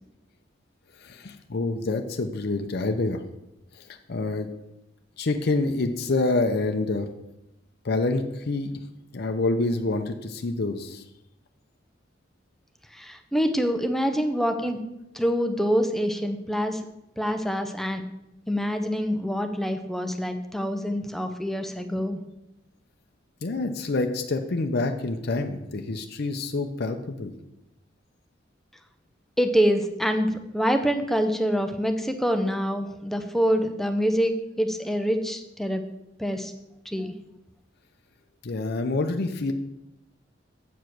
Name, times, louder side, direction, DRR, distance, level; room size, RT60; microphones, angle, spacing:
voice 1, 1.0-3.2 3.7-4.5 5.2-7.1 7.8-8.7 9.1-11.0 23.4-27.3 38.4-39.5, left 2 dB, 55° left, 5 dB, 0.6 m, -27 dB
voice 2, 12.9-14.8 15.1-16.9 17.2-18.0 18.5-22.2 29.4-35.8 36.2-36.5 36.9-37.1, equal, ahead, 6 dB, 0.6 m, -25 dB
8.1 x 4.9 x 5.9 m, 0.87 s
head